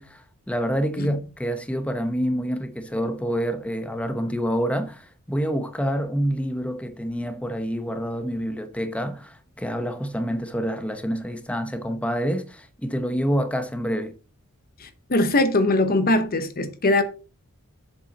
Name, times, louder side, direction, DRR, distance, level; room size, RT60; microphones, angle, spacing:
voice 1, 0.0-14.1, equal, 5° left, 0.8 m, -27 dB
voice 2, 14.8-17.0, left 2 dB, 40° left, 0.9 m, -21 dB
7.7 x 7.4 x 4.1 m
head